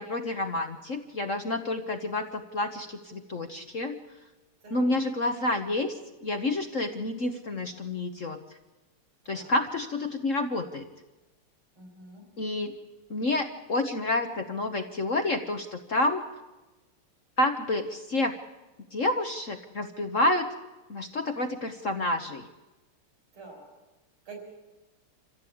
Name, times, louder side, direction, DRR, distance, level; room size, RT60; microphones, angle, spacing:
voice 1, 0.0-4.0 4.7-8.4 9.3-10.9 12.4-12.8 13.1-16.2 17.4-18.3 18.9-20.5 20.9-22.5, left 2 dB, 45° left, 6 dB, 1.2 m, -29 dB
voice 2, 4.6-5.0 9.2-9.6 11.8-12.2 23.3-23.7 24.3-24.4, right 3 dB, 75° right, 3 dB, 6.0 m, -46 dB
25.5 x 15.5 x 8.6 m, 1.1 s
omnidirectional pair, 2.4 m